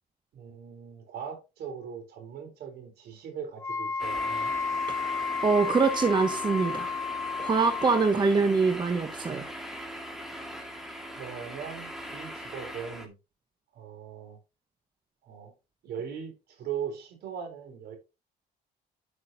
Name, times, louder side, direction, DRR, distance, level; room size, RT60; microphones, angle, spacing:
voice 1, 0.3-4.5 11.1-13.1 13.7-14.4 15.2-15.5 15.8-18.0, right 7 dB, 70° right, 3.9 m, -39 dB
Wind instrument woodwind instrument, 3.6-8.1, left 5 dB, 15° left, 0.6 m, -32 dB
sound 1, 4.0-13.1, equal, ahead, 2.1 m, -40 dB
voice 2, 5.4-6.9 7.4-9.5, right 4 dB, 25° right, 1.2 m, -24 dB
11.5 x 6.3 x 2.8 m
cardioid pair, 110°, 17 cm